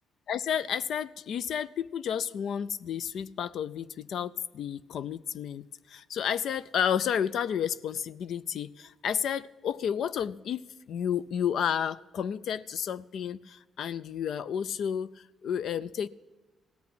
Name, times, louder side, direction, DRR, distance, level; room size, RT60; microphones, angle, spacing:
voice 1, 0.3-16.1, left 8 dB, 70° left, 15 dB, 0.4 m, -31 dB
17.0 x 5.9 x 10.0 m, 1.2 s
cardioid pair, 90°, 0 cm